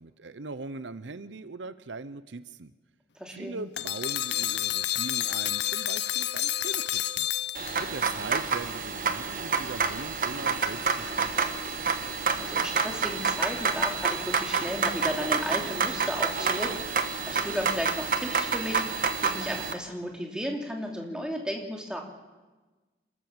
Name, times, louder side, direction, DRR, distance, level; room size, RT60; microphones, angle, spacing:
voice 1, 0.0-2.7 3.3-7.3 7.8-11.6, right 3 dB, 85° right, 14 dB, 0.8 m, -40 dB
voice 2, 3.2-3.6 12.4-22.0, equal, 5° right, 1 dB, 2.7 m, -34 dB
sound 1, 3.8-8.1, left 13 dB, 70° left, 0.6 m, -29 dB
sound 2, 7.5-19.7, right 5 dB, 45° right, 1.4 m, -28 dB
27.5 x 14.0 x 7.2 m, 1.2 s
head